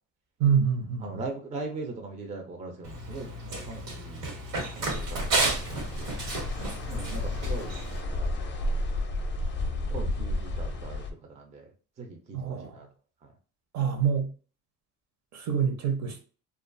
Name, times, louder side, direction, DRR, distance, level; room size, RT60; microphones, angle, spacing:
voice 1, 0.4-1.1 12.3-12.8 13.7-14.3 15.3-16.2, right 7 dB, 55° right, 0.7 m, -26 dB
voice 2, 1.0-4.3 4.7-6.1 6.9-7.8 8.1-8.8 9.9-11.7 12.0-12.9, right 3 dB, 20° right, 0.4 m, -40 dB
Run, 2.8-8.0, right 2 dB, 85° right, 1.3 m, -32 dB
sound 1, 4.9-11.1, left 1 dB, 35° left, 0.5 m, -32 dB
2.4 x 2.3 x 2.5 m
cardioid pair, 130°, 32 cm